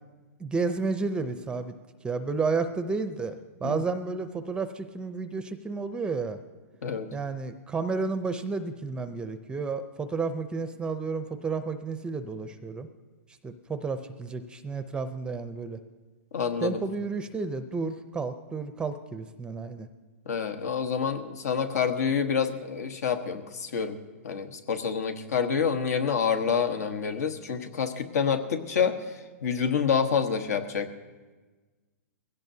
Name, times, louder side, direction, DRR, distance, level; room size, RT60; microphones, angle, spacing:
voice 1, 0.4-1.7 2.0-6.4 7.1-12.9 13.4-15.8 16.6-19.9, right 4 dB, 10° right, 10 dB, 0.5 m, -31 dB
voice 2, 16.3-16.8 20.3-24.0 24.2-30.9, left 6 dB, 75° left, 8 dB, 1.3 m, -27 dB
21.5 x 16.5 x 2.8 m, 1.3 s
hypercardioid pair, 135°, 9 cm